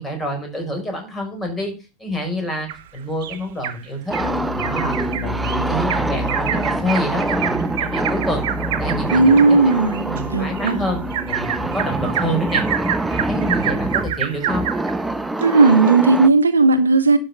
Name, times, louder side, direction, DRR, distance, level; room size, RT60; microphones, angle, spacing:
voice 1, 0.0-1.7 2.0-4.1 4.6-8.4 8.8-9.5 9.9-11.0 11.3-12.6 13.1-14.7, equal, 10° left, 5.0 m, -27 dB
Bird vocalization bird call bird song, 2.7-3.8 4.1-4.3 4.6-14.9 15.4-15.5 15.9-16.0, right 10 dB, 50° right, 1.2 m, -27 dB
sound 1, 4.1-16.3, right 2 dB, 5° right, 0.6 m, -25 dB
sound 2, 4.2-15.3, left 2 dB, 50° left, 3.9 m, -32 dB
voice 2, 9.1-10.8 15.4-17.2, right 3 dB, 75° right, 1.2 m, -15 dB
12.0 x 5.9 x 6.6 m
figure-of-eight pair, 90°, 0 cm